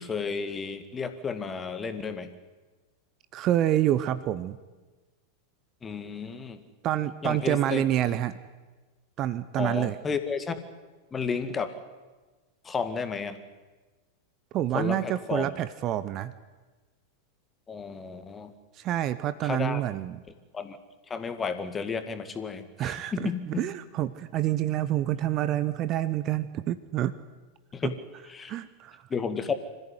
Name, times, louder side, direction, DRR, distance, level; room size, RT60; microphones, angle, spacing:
voice 1, 0.0-2.3 5.8-6.6 7.2-7.8 9.6-10.6 11.1-11.7 12.6-13.4 14.7-15.5 17.7-18.5 19.4-19.8 20.5-20.8 21.1-23.6 27.7-27.9 28.3-28.5 29.1-29.5, left 5 dB, 20° left, 10 dB, 2.1 m, -32 dB
voice 2, 3.3-4.6 6.8-8.4 9.2-10.0 14.5-16.3 18.7-20.2 22.8-27.1 27.8-27.9 28.5-29.1, right 12 dB, 35° right, 14 dB, 0.9 m, -27 dB
26.0 x 14.5 x 9.7 m, 1.3 s
figure-of-eight pair, 90°, 0 cm